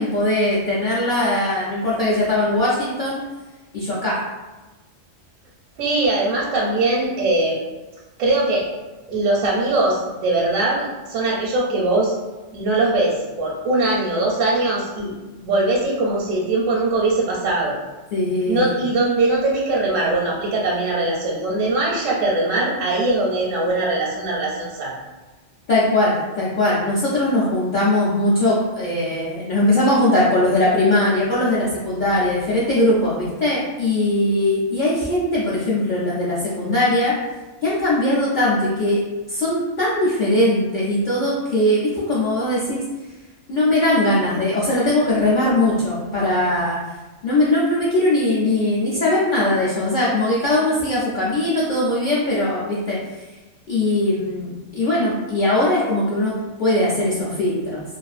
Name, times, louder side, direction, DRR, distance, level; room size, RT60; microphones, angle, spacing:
voice 1, 0.0-3.2 3.7-4.2 18.1-18.7 25.7-37.1 37.6-39.0 39.3-42.8 43.5-46.8 47.2-53.0 53.7-56.3 56.6-57.8, left 1 dB, 55° left, -8 dB, 0.5 m, -20 dB
voice 2, 5.8-7.6 8.2-8.7 9.1-12.1 12.5-15.1 15.4-17.8 18.4-24.9, right 2 dB, 75° right, -3 dB, 0.9 m, -21 dB
2.4 x 2.4 x 2.4 m, 1.2 s
omnidirectional pair, 1.3 m